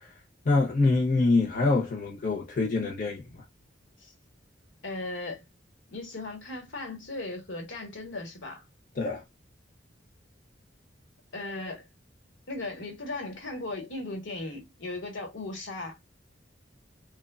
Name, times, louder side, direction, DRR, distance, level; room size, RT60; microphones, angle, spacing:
voice 1, 0.4-3.2 9.0-9.2, left 3 dB, 45° left, 0.7 m, -25 dB
voice 2, 4.8-5.4 5.9-8.6 11.3-11.9 12.5-16.0, left 2 dB, 80° left, 1.1 m, -37 dB
3.0 x 2.1 x 2.2 m
head